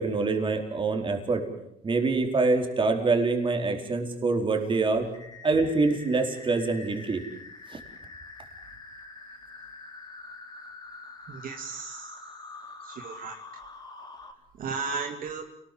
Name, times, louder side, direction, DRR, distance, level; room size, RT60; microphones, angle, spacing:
voice 1, 0.0-1.4 1.8-5.1 5.4-7.2 7.7-7.8, right 3 dB, 30° right, 4 dB, 4.5 m, -25 dB
sound 1, 5.1-14.3, left 3 dB, 25° left, 3.7 m, -45 dB
voice 2, 11.3-12.1 12.8-13.4 14.6-15.4, right 5 dB, 55° right, 3 dB, 2.5 m, -35 dB
29.0 x 19.5 x 7.8 m, 0.81 s
cardioid pair, 110°, 17 cm